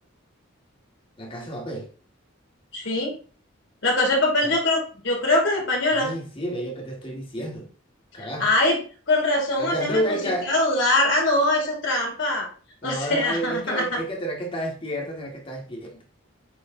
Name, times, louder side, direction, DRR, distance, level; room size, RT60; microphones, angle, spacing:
voice 1, 1.2-1.9 4.4-4.6 5.9-7.7 8.1-8.5 9.6-10.5 12.8-16.0, right 1 dB, 25° left, 1.8 m, -30 dB
voice 2, 2.7-3.1 3.8-6.1 8.2-8.8 9.1-10.2 10.5-12.5 12.8-13.8, left 1 dB, 60° left, 3.0 m, -22 dB
8.6 x 3.6 x 3.8 m
head